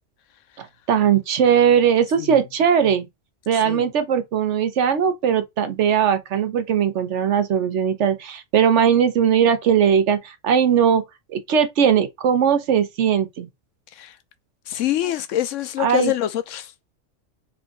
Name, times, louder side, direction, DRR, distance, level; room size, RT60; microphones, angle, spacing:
voice 1, 0.6-3.1 3.5-11.0 11.3-13.5 15.8-16.1, right 8 dB, 75° right, 1.0 m, -19 dB
voice 2, 3.5-3.9 13.9-14.2 14.7-16.7, left 13 dB, 85° left, 0.9 m, -25 dB
3.5 x 2.3 x 3.7 m
omnidirectional pair, 1.3 m